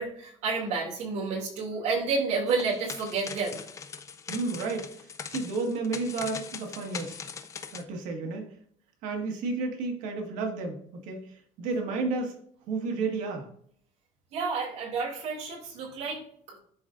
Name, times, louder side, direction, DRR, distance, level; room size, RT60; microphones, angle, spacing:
voice 1, 0.0-3.6 14.3-16.2 16.5-16.6, right 4 dB, 55° right, -2 dB, 2.3 m, -30 dB
sound 1, 2.5-7.8, left 6 dB, 25° left, 0.4 m, -41 dB
voice 2, 4.3-7.2 7.7-8.5 9.0-12.4 12.7-13.5, right 3 dB, 75° right, 3 dB, 1.5 m, -32 dB
11.0 x 3.7 x 2.5 m, 0.62 s
cardioid pair, 170°, 14 cm